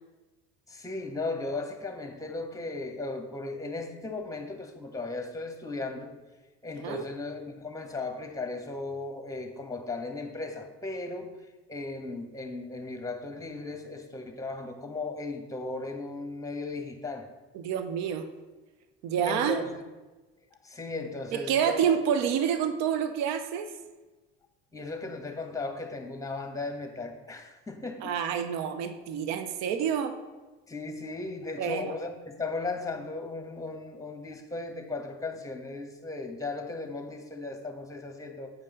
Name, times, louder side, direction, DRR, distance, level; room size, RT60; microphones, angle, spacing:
voice 1, 0.7-6.1 6.6-11.3 11.7-17.3 19.2-19.7 20.6-22.0 24.7-28.1 30.7-38.5, left 3 dB, 10° left, 6 dB, 1.4 m, -36 dB
voice 2, 17.5-18.2 19.0-19.6 21.3-23.7 28.0-30.2 31.6-31.9, right 8 dB, 65° right, 9 dB, 0.8 m, -28 dB
8.3 x 5.4 x 5.2 m, 1.2 s
hypercardioid pair, 70°, 29 cm